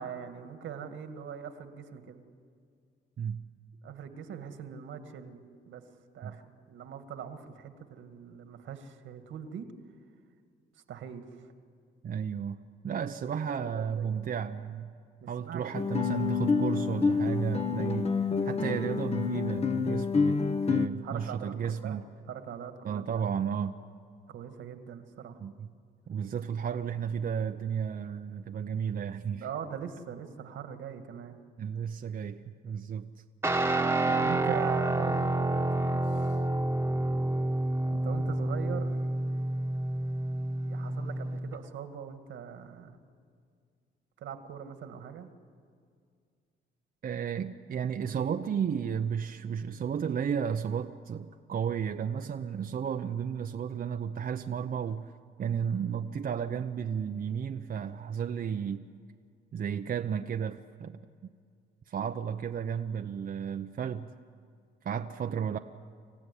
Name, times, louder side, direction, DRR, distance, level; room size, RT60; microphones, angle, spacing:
voice 1, 0.0-2.2 3.8-5.8 6.1-9.7 10.9-11.3 13.3-14.1 15.2-15.9 20.8-22.0 22.3-23.0 24.3-25.4 29.3-31.4 34.1-36.4 37.9-39.0 40.6-43.0 44.2-45.3, right 8 dB, 75° right, 7 dB, 1.9 m, -42 dB
voice 2, 12.0-12.6 12.8-14.9 15.3-22.0 22.8-23.7 25.4-25.7 26.1-29.5 31.6-33.1 47.0-55.1 55.4-58.9 59.5-61.0 61.9-64.1 64.8-65.6, right 7 dB, 45° right, 6 dB, 0.7 m, -33 dB
Guitar, 15.7-20.9, left 5 dB, 30° left, 1.1 m, -28 dB
Guitar 2, 33.4-41.6, right 2 dB, 10° right, 1.4 m, -29 dB
26.0 x 15.5 x 9.9 m, 2.2 s
cardioid pair, 90°, 20 cm